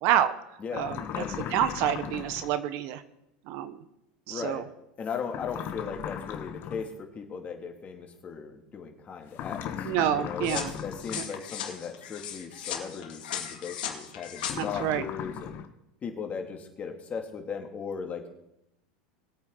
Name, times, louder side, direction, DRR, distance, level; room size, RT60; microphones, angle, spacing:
voice 1, 0.0-0.3 0.7-1.2 1.5-3.0 3.5-3.8 4.3-4.6 9.8-10.7 11.1-11.2 14.6-15.0, right 11 dB, 60° right, 12 dB, 0.9 m, -28 dB
voice 2, 0.6-1.5 4.3-4.6 5.0-15.6 16.0-18.3, left 6 dB, 30° left, 4 dB, 2.3 m, -37 dB
sound 1, 0.7-2.5 5.3-6.9 9.3-11.3 14.4-15.7, left 9 dB, 45° left, 1.2 m, -37 dB
sound 2, 10.4-14.5, left 9 dB, 80° left, 2.1 m, -37 dB
20.5 x 8.7 x 3.8 m, 0.85 s
supercardioid pair, 115°, 5 cm